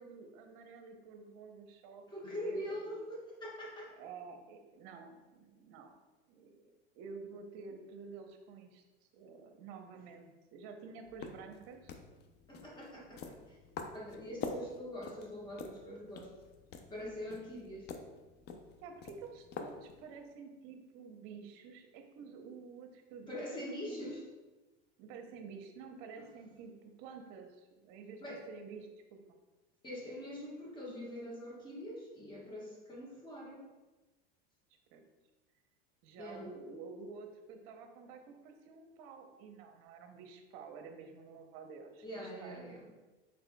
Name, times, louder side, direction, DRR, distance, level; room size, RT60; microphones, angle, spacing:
voice 1, 0.0-2.9 4.0-5.9 6.3-8.8 9.1-11.9 18.8-24.1 25.0-28.2 28.5-29.4 34.9-35.0 36.0-42.9, right 5 dB, 60° right, 5 dB, 0.7 m, -50 dB
voice 2, 2.1-3.9 12.5-13.6 13.9-16.3 16.9-17.9 23.3-24.2 26.2-26.3 28.2-28.4 29.8-33.7 36.2-36.5 42.0-42.9, equal, 15° left, -4 dB, 1.2 m, -43 dB
sound 1, 11.0-20.2, left 5 dB, 35° left, 0.4 m, -47 dB
4.2 x 3.8 x 2.2 m, 1.2 s
supercardioid pair, 125°, 30 cm